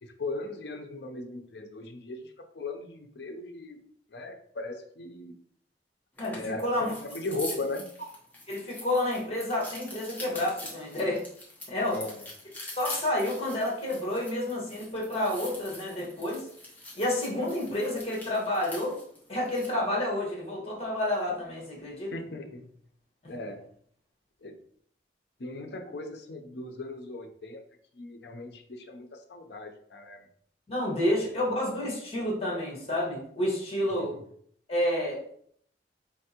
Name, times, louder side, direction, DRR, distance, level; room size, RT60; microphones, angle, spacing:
voice 1, 0.0-3.8 4.1-5.4 6.2-7.9 11.9-12.3 22.1-22.7 23.3-23.7 24.4-24.6 25.4-27.6 27.9-30.3 31.1-31.3 33.9-34.1, left 2 dB, 70° left, 6 dB, 0.6 m, -38 dB
voice 2, 6.2-6.9 8.5-11.2 11.7-12.0 12.8-16.4 17.0-19.0 19.3-22.1 30.7-34.2 34.7-35.2, left 1 dB, 35° left, -3 dB, 1.4 m, -29 dB
sound 1, 6.2-19.8, left 2 dB, 10° left, 1.0 m, -44 dB
4.1 x 3.4 x 2.9 m, 0.63 s
head